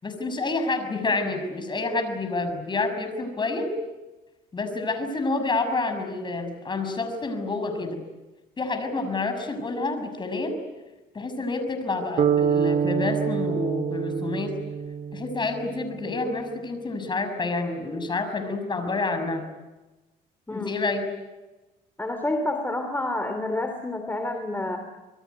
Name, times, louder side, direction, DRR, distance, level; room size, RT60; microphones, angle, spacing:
voice 1, 0.0-3.7 4.5-8.0 8.6-10.6 11.1-14.5 15.1-19.5 20.5-21.0, left 3 dB, 25° left, 8 dB, 6.2 m, -28 dB
sound 1, 12.2-16.1, right 7 dB, 45° right, 1.7 m, -26 dB
voice 2, 22.0-24.8, left 2 dB, 10° left, 6 dB, 3.0 m, -28 dB
26.5 x 22.0 x 9.5 m, 1.1 s
cardioid pair, 110°, 17 cm